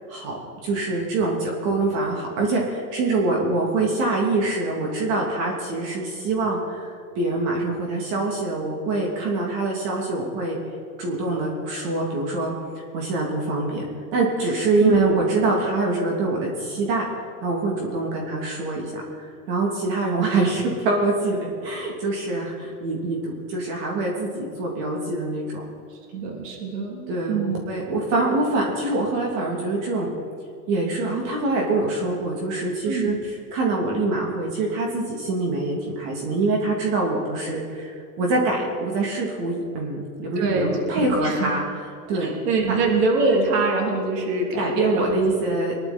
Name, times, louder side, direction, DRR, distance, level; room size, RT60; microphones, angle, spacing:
voice 1, 0.6-10.6 11.0-12.5 12.9-13.8 14.1-17.0 17.4-25.6 27.1-30.1 30.7-41.6 42.1-42.4 44.6-45.7, right 2 dB, 50° right, -1 dB, 3.0 m, -24 dB
voice 2, 14.8-15.1 26.1-27.6 32.8-33.1 40.3-41.5 42.1-45.2, right 3 dB, 80° right, 0 dB, 3.3 m, -24 dB
22.5 x 11.5 x 4.4 m, 2.4 s
supercardioid pair, 130°, 47 cm